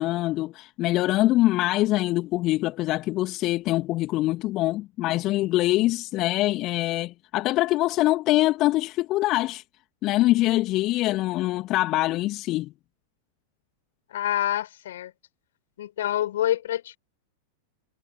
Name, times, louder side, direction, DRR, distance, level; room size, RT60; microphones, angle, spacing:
voice 1, 0.0-9.6 10.0-12.7, left 17 dB, 35° left, 2.4 m, -24 dB
voice 2, 14.1-15.1 15.8-17.0, left 12 dB, 60° left, 5.7 m, -27 dB
figure-of-eight pair, 95°, 0 cm